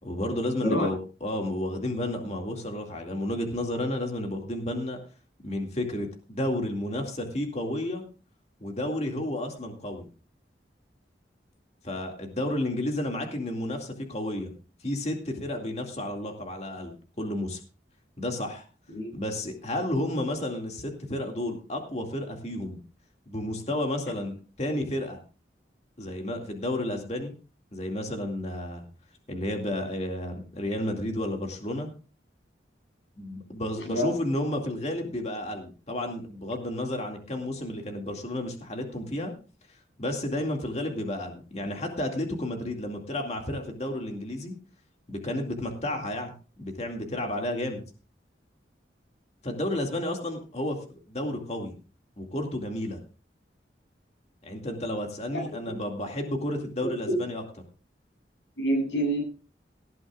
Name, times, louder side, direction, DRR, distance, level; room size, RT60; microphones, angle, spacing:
voice 1, 0.0-5.0 5.4-8.0 8.6-10.1 11.8-14.6 14.8-17.6 18.2-18.6 19.1-22.8 23.3-25.2 26.0-27.3 27.7-28.8 29.3-31.9 33.2-39.3 40.0-44.5 45.1-47.8 49.4-51.7 52.2-53.0 54.4-57.4, left 1 dB, 35° left, 3 dB, 2.3 m, -31 dB
voice 2, 56.8-57.2 58.6-59.2, equal, 85° left, 1 dB, 7.6 m, -27 dB
18.0 x 12.5 x 2.4 m, 0.35 s
head